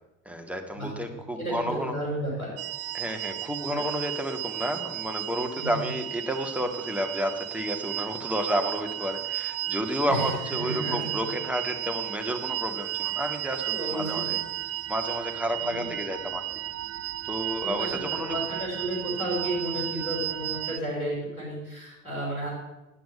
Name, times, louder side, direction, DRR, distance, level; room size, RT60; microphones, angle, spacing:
voice 1, 0.3-1.9 2.9-14.4 14.9-16.4 17.3-18.4, equal, 5° right, 3 dB, 1.9 m, -31 dB
voice 2, 1.4-2.5 3.7-3.9 5.5-5.8 10.1-11.3 13.7-14.3 15.6-15.9 17.6-22.5, right 1 dB, 85° left, -4 dB, 5.2 m, -32 dB
sound 1, 2.6-20.8, right 15 dB, 40° right, 0.5 m, -34 dB
9.1 x 8.6 x 8.8 m, 1.0 s
figure-of-eight pair, 60°, 41 cm